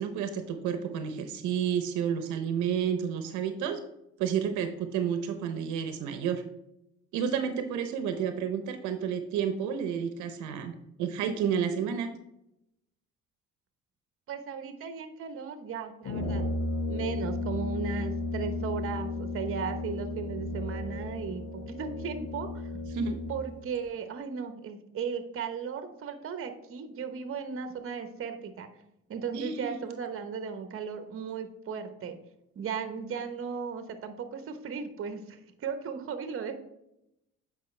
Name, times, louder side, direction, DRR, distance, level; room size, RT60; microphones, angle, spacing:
voice 1, 0.0-3.8 4.2-6.4 7.1-12.1 22.9-23.2 29.3-29.8, right 8 dB, 85° right, 8 dB, 0.8 m, -30 dB
voice 2, 14.3-16.5 16.9-22.7 23.3-28.7 29.1-32.2 32.5-36.6, right 6 dB, 45° right, 8 dB, 1.0 m, -36 dB
Brass instrument, 16.0-23.5, left 2 dB, 70° left, 1.6 m, -34 dB
8.2 x 5.1 x 3.2 m, 0.83 s
cardioid pair, 95°, 29 cm